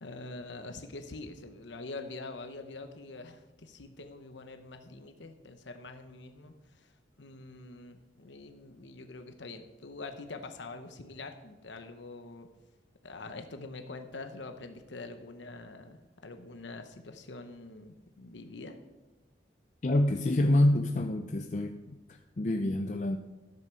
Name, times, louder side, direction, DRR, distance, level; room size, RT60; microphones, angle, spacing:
voice 1, 0.0-6.9 7.2-12.5 13.0-18.7, left 3 dB, 85° left, 6 dB, 1.0 m, -45 dB
voice 2, 19.8-23.2, left 1 dB, 40° left, 6 dB, 0.5 m, -27 dB
12.5 x 7.8 x 6.3 m, 1.1 s
head